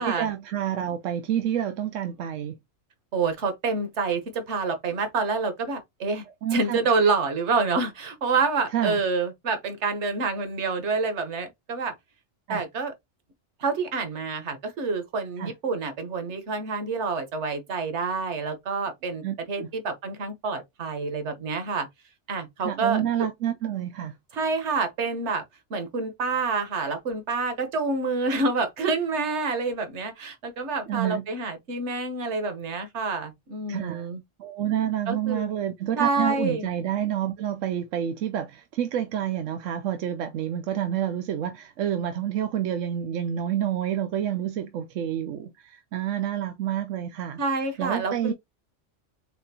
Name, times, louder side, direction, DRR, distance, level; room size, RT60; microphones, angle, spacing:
voice 1, 0.0-2.6 6.4-6.8 8.7-9.0 12.5-12.6 15.4-15.5 19.2-19.7 22.6-24.2 30.9-31.3 33.7-34.1 34.4-47.4 47.8-48.3, right 10 dB, 80° right, 1.0 m, -28 dB
voice 2, 3.1-6.2 6.5-11.9 12.5-12.9 13.6-21.9 22.3-23.3 24.3-25.4 25.7-34.2 35.1-35.5 36.0-36.7 47.4-48.3, right 4 dB, 65° right, 1.3 m, -27 dB
4.2 x 3.7 x 2.7 m
omnidirectional pair, 1.3 m